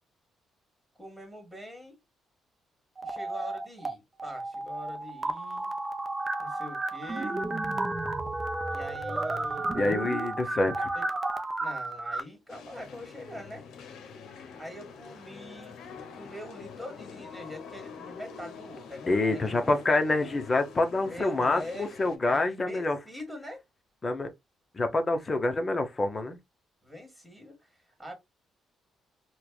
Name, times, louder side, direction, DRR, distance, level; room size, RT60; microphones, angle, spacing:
voice 1, 1.0-2.0 3.0-5.7 6.4-7.4 8.7-9.7 10.9-11.1 11.6-13.7 14.6-15.8 16.2-19.7 21.1-21.9 22.2-23.6 26.8-28.1, equal, 5° right, 1.8 m, -44 dB
sound 1, 3.0-3.9 4.2-12.2, right 2 dB, 25° right, 0.5 m, -32 dB
voice 2, 9.7-10.9 19.1-23.0 24.0-24.3 24.7-26.4, left 2 dB, 30° left, 0.8 m, -27 dB
sound 2, 12.5-22.2, left 5 dB, 80° left, 0.7 m, -46 dB
4.5 x 2.2 x 2.3 m
cardioid pair, 90°, 0 cm